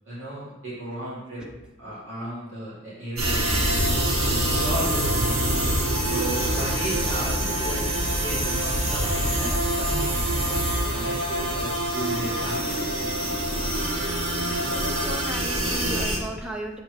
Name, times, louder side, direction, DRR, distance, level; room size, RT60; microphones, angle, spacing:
voice 1, 0.1-1.4 1.8-5.3 6.1-13.2, right 1 dB, 60° right, -9 dB, 2.5 m, -35 dB
sound 1, 3.2-16.2, right 1 dB, 90° right, 2.1 m, -25 dB
voice 2, 14.4-16.8, right 1 dB, 5° right, 1 dB, 0.7 m, -36 dB
6.2 x 4.3 x 4.8 m, 1.1 s
head